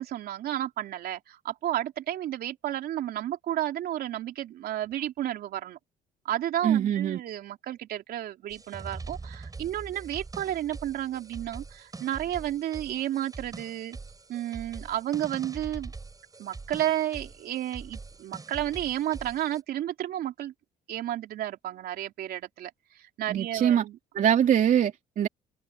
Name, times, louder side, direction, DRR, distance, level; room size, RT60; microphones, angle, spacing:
voice 1, 0.0-5.8 6.3-14.0 14.3-15.9 16.4-20.5 20.9-24.0, right 12 dB, 70° right, 3.5 m, -32 dB
voice 2, 6.6-7.2 23.3-23.8 24.1-25.3, right 9 dB, 55° right, 3.1 m, -23 dB
sound 1, 8.5-19.6, right 3 dB, 20° right, 7.0 m, -43 dB
cardioid pair, 105°, 17 cm